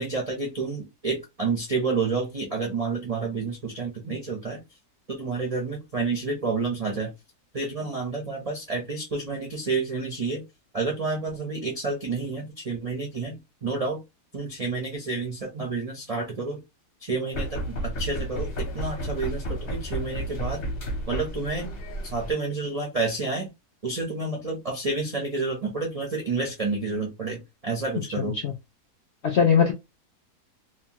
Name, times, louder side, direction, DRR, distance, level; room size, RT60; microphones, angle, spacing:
voice 1, 0.0-4.6 5.1-7.1 7.5-10.4 10.7-14.0 14.3-16.6 17.0-20.6 21.1-21.7 22.0-23.5 23.8-28.4, right 3 dB, 50° right, 0.4 m, -29 dB
sound 1, 17.3-22.3, right 1 dB, 50° left, 1.0 m, -32 dB
voice 2, 28.2-28.5 29.2-29.7, left 6 dB, 70° left, 0.6 m, -21 dB
2.8 x 2.2 x 2.7 m
omnidirectional pair, 1.7 m